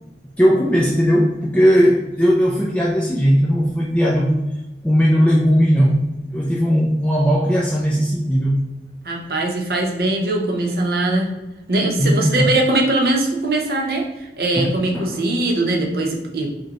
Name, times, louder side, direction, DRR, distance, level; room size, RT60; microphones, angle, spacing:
voice 1, 0.4-4.4 4.8-6.0 6.3-8.7 12.0-12.5 14.6-15.2, equal, 5° left, -3 dB, 0.3 m, -17 dB
voice 2, 9.0-11.3 11.7-14.1 14.4-16.5, right 2 dB, 55° right, 0 dB, 0.7 m, -21 dB
5.0 x 2.2 x 2.9 m, 1.0 s
head